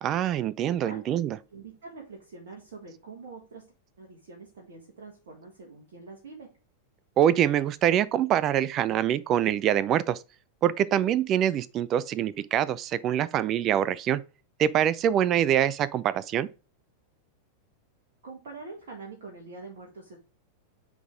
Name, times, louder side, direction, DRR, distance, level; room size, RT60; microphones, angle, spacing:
voice 1, 0.0-1.4 7.2-10.2 10.6-14.2 14.6-16.5, right 10 dB, 35° right, 0.4 m, -24 dB
voice 2, 0.7-1.0 1.5-6.5 18.2-20.2, right 3 dB, 60° right, 1.7 m, -45 dB
9.2 x 3.8 x 3.7 m
figure-of-eight pair, 90°, 0 cm